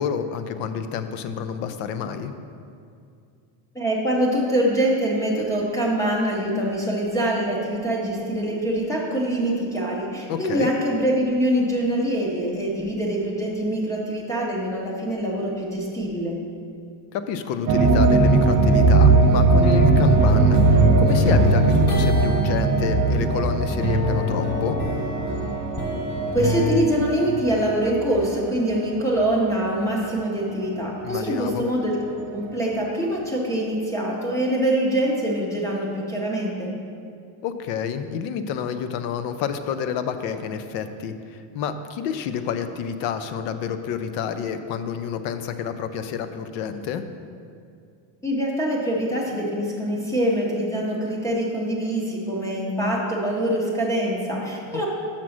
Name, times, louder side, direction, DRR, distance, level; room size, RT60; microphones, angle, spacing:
voice 1, 0.0-2.3 10.3-10.7 17.1-24.8 31.0-31.6 37.4-47.0 54.7-54.9, left 7 dB, 60° left, 10 dB, 0.6 m, -29 dB
voice 2, 3.7-16.3 26.2-36.7 48.2-54.9, right 1 dB, 5° left, -2 dB, 0.6 m, -24 dB
sound 1, 17.7-28.5 29.0-29.1 30.9-31.0, right 3 dB, 35° right, 0.4 m, -19 dB
sound 2, 18.9-23.4 23.7-26.7, equal, 35° left, 1.3 m, -26 dB
6.0 x 5.8 x 6.2 m, 2.4 s
cardioid pair, 175°, 49 cm